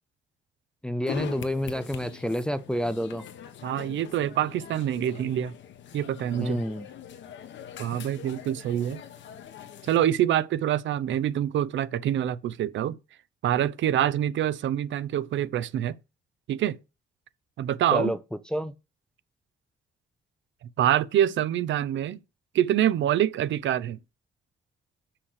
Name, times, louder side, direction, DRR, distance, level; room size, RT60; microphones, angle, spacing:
voice 1, 0.8-3.2 6.4-6.9 17.9-18.2 18.5-18.7, equal, 5° left, 0.4 m, -28 dB
sound 1, 1.0-10.0, left 9 dB, 60° left, 1.1 m, -42 dB
voice 2, 3.6-5.5 5.9-6.6 7.8-9.0 9.8-13.0 13.4-15.9 16.5-16.8 17.6-18.1 20.8-22.2 22.5-24.0, right 11 dB, 60° right, 0.6 m, -25 dB
6.5 x 6.0 x 4.8 m
cardioid pair, 170°, 21 cm